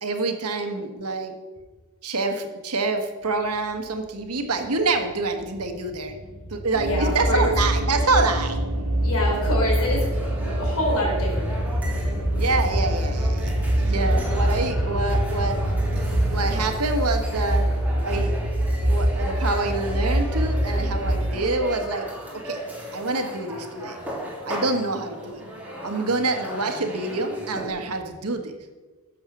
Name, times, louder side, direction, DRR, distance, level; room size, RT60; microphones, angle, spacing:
voice 1, 0.0-1.3 2.0-6.1 6.5-8.6 12.3-15.6 16.3-17.6 18.0-18.3 18.9-22.1 22.3-22.6 22.9-24.0 24.4-25.4 25.8-28.5, right 3 dB, 85° right, 6 dB, 1.5 m, -26 dB
sound 1, 3.2-16.6, right 1 dB, 35° left, 2.1 m, -33 dB
sound 2, 6.7-21.4, right 1 dB, 70° right, 1.7 m, -25 dB
voice 2, 6.8-7.4 9.0-10.1 10.4-11.5, left 1 dB, 75° left, -2 dB, 4.1 m, -26 dB
sound 3, 9.2-27.7, right 1 dB, 5° right, 3.0 m, -36 dB
13.0 x 7.5 x 6.1 m, 1.3 s
head